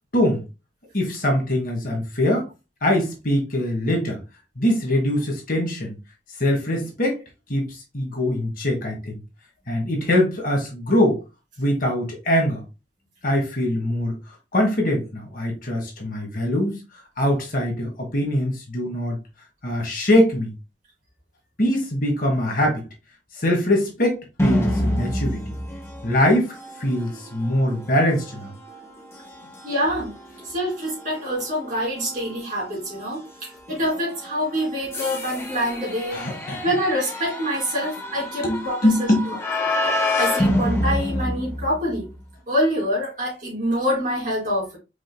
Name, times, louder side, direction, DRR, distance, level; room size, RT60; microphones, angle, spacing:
voice 1, 0.1-0.4 0.9-2.5 2.8-4.2 4.6-5.9 6.4-7.2 7.5-9.2 9.7-11.2 11.6-12.6 13.2-14.1 14.5-16.8 17.2-19.2 19.6-20.5 21.6-22.8 23.3-25.6 26.0-28.5 36.1-36.6 38.4-39.3, left 1 dB, 50° left, 1.4 m, -22 dB
sound 1, 24.4-42.1, left 1 dB, 15° left, 0.9 m, -29 dB
voice 2, 29.6-30.2 30.4-36.2 36.6-39.9 40.2-42.1 42.5-44.8, equal, 45° right, 3.0 m, -26 dB
5.0 x 4.6 x 2.2 m
head